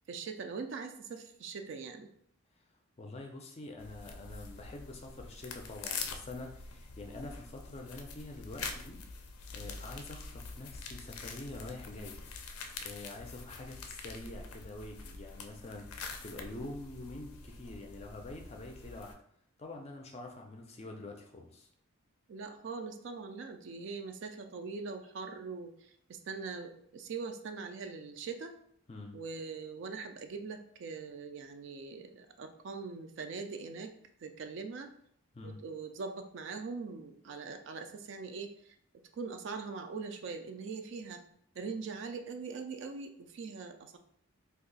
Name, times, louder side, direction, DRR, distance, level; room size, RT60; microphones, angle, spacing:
voice 1, 0.1-2.1 22.3-28.6 29.1-34.0 34.2-34.9 35.4-38.8 39.1-41.2 41.6-44.0, right 4 dB, 55° right, 6 dB, 0.3 m, -42 dB
voice 2, 3.0-9.0 9.5-12.2 12.8-19.2 19.6-21.7 28.9-29.2 35.3-35.6, left 2 dB, 30° left, 2 dB, 0.4 m, -46 dB
sound 1, 3.8-19.1, left 4 dB, 90° left, 0.4 m, -45 dB
2.7 x 2.4 x 3.9 m, 0.67 s
head